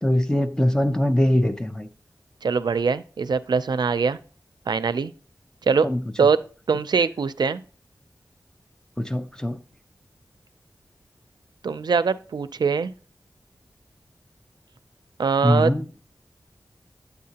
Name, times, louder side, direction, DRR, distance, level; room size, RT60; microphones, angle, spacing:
voice 1, 0.0-1.9 5.8-6.0 9.0-9.6 15.4-15.9, left 1 dB, 10° left, 0.7 m, -22 dB
voice 2, 2.4-4.2 4.7-5.1 5.7-5.9 6.2-6.4 6.7-7.6 11.6-12.9 15.2-15.7, right 5 dB, 80° right, 0.4 m, -22 dB
9.3 x 8.1 x 2.8 m
wide cardioid pair, 90°, 7 cm